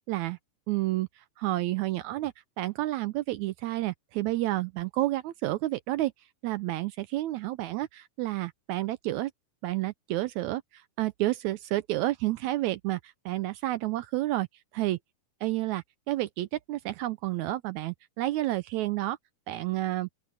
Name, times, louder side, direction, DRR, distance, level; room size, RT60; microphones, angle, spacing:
voice 1, 0.1-0.4 0.7-6.1 6.4-9.3 9.6-14.5 14.7-15.0 15.4-19.2 19.5-20.1, right 16 dB, 85° right, 1.7 m, -30 dB
open air
omnidirectional pair, 3.8 m